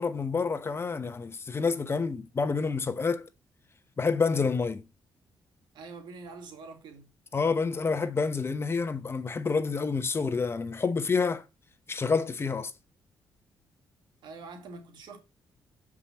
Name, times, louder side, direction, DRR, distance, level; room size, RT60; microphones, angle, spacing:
voice 1, 0.0-3.3 4.0-4.8 7.3-11.4 11.9-12.7, left 4 dB, 30° left, 0.9 m, -28 dB
voice 2, 5.7-7.0 14.2-15.2, right 4 dB, 80° right, 2.2 m, -45 dB
7.5 x 4.9 x 4.1 m
cardioid pair, 95°, 8 cm